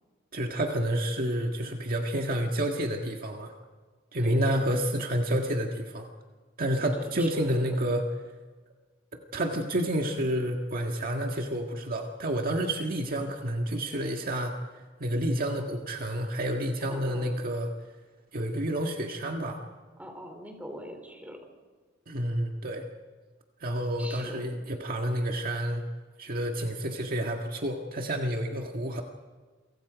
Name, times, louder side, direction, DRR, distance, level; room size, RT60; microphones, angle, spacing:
voice 1, 0.3-3.5 4.1-6.1 6.6-8.1 9.3-14.6 15.0-17.7 18.3-19.6 22.1-22.8 23.6-25.8 26.2-29.0, right 1 dB, 45° right, 2 dB, 1.8 m, -29 dB
voice 2, 4.2-4.6 6.9-7.6 16.8-17.4 20.0-21.4 24.0-24.5, equal, 10° right, 4 dB, 3.8 m, -43 dB
28.5 x 25.0 x 5.1 m, 1.4 s
head